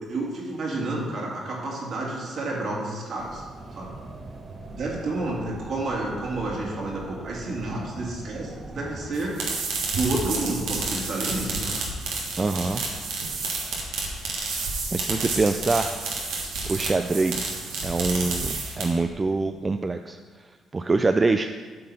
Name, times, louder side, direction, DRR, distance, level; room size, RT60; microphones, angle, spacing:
voice 1, 0.0-3.4 3.8-3.9 4.7-9.4 9.9-11.8, right 2 dB, 65° right, -3 dB, 2.4 m, -30 dB
sound 1, 3.2-9.1, right 2 dB, 45° right, 1.0 m, -41 dB
sound 2, 9.1-19.1, right 3 dB, 85° right, 1.5 m, -30 dB
voice 2, 12.4-12.8 14.6-15.9 16.7-17.6 17.8-20.2 20.7-21.5, right 3 dB, 30° right, 7 dB, 0.4 m, -24 dB
8.5 x 3.8 x 6.6 m, 1.4 s
supercardioid pair, 70°, 0 cm